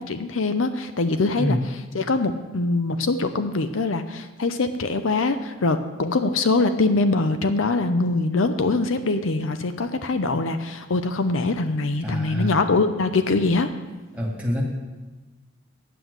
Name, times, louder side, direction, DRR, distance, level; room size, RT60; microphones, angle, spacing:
voice 1, 0.0-1.6 1.9-13.7, left 3 dB, 70° left, 9 dB, 0.7 m, -23 dB
voice 2, 12.0-12.6 14.1-14.6, equal, 5° right, -3 dB, 2.2 m, -26 dB
9.2 x 7.6 x 8.0 m, 1.2 s
head